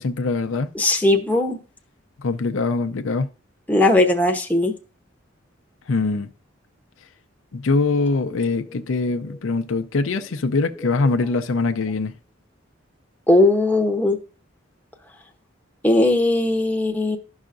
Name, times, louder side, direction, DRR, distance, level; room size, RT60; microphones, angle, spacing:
voice 1, 0.0-0.7 2.2-3.3 5.9-6.3 7.5-12.1, left 3 dB, 80° left, 0.6 m, -23 dB
voice 2, 0.7-1.6 3.7-4.7 13.3-14.2 15.8-17.2, left 2 dB, 10° left, 0.8 m, -18 dB
12.0 x 5.6 x 2.5 m
head